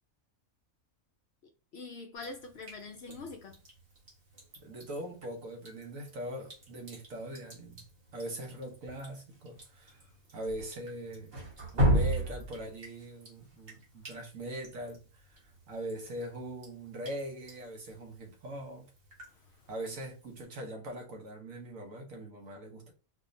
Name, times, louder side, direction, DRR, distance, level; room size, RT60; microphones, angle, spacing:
voice 1, 1.7-3.6 13.7-13.8 19.3-19.7, left 3 dB, 65° left, 0.7 m, -45 dB
Drip, 2.2-20.4, right 1 dB, 45° right, 1.5 m, -38 dB
voice 2, 4.6-7.8 8.1-10.0 10.3-11.4 11.7-18.9 19.7-22.9, right 1 dB, 70° right, 1.4 m, -41 dB
4.1 x 3.1 x 2.6 m
omnidirectional pair, 1.5 m